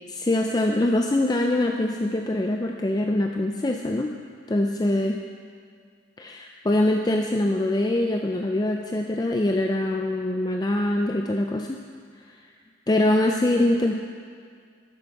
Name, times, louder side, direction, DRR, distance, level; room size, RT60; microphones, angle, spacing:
voice 1, 0.1-4.1 4.5-5.2 6.2-11.8 12.9-13.9, left 1 dB, 20° left, 2 dB, 0.4 m, -23 dB
12.5 x 9.2 x 4.7 m, 2.1 s
head